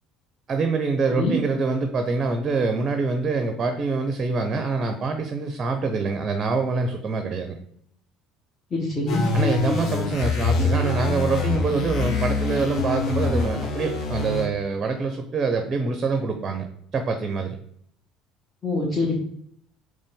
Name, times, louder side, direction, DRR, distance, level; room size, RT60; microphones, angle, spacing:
voice 1, 0.5-7.6 9.3-16.7 16.9-17.6, right 4 dB, 35° right, 6 dB, 0.6 m, -25 dB
voice 2, 8.7-9.3 18.6-19.1, left 2 dB, 30° left, -4 dB, 1.3 m, -24 dB
sound 1, 9.1-14.5, left 3 dB, 55° left, 0.8 m, -25 dB
4.0 x 3.2 x 3.6 m, 0.69 s
hypercardioid pair, 70°, 0 cm